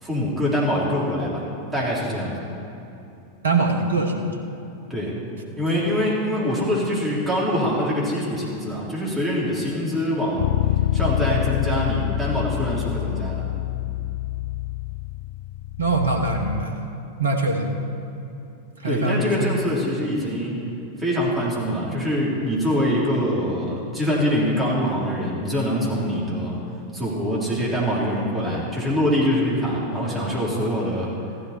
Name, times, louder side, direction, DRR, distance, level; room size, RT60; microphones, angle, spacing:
voice 1, 0.0-1.4 1.7-2.5 4.9-5.1 5.6-10.5 10.9-13.4 18.8-20.6 21.0-26.6 26.9-31.1, equal, 15° right, -6 dB, 3.6 m, -24 dB
voice 2, 3.4-4.3 15.8-16.9 17.2-17.8 18.8-19.3, right 3 dB, 70° right, 3 dB, 1.3 m, -23 dB
Bass guitar, 10.4-16.6, left 14 dB, 55° left, 0.3 m, -26 dB
14.5 x 11.5 x 4.5 m, 2.8 s
figure-of-eight pair, 90°, 0 cm